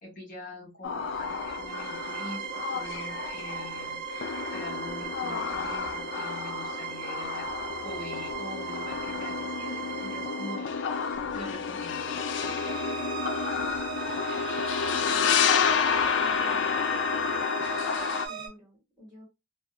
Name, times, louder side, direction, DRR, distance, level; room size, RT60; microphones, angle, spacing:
voice 1, 0.0-2.4 2.7-4.0 4.5-7.5 7.8-10.7 11.3-12.1, left 1 dB, 45° left, -2 dB, 1.1 m, -43 dB
sound 1, 0.8-18.3, left 6 dB, 65° left, 0.3 m, -30 dB
sound 2, 1.1-18.5, right 7 dB, 50° right, 0.7 m, -38 dB
voice 2, 14.8-15.4 16.2-16.9 18.3-19.2, equal, 20° right, -4 dB, 1.6 m, -50 dB
2.7 x 2.2 x 2.3 m, 0.23 s
head